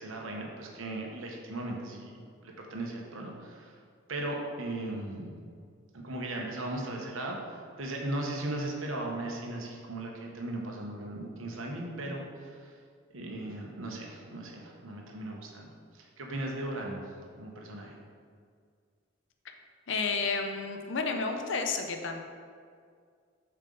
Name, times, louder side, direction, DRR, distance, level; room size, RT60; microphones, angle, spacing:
voice 1, 0.0-3.8 4.1-5.3 5.9-12.8 13.1-15.7 15.9-17.1 17.4-18.0, right 1 dB, 85° right, 0 dB, 1.0 m, -37 dB
voice 2, 19.9-22.2, left 4 dB, 65° left, 5 dB, 0.6 m, -31 dB
7.4 x 4.5 x 3.9 m, 2.1 s
head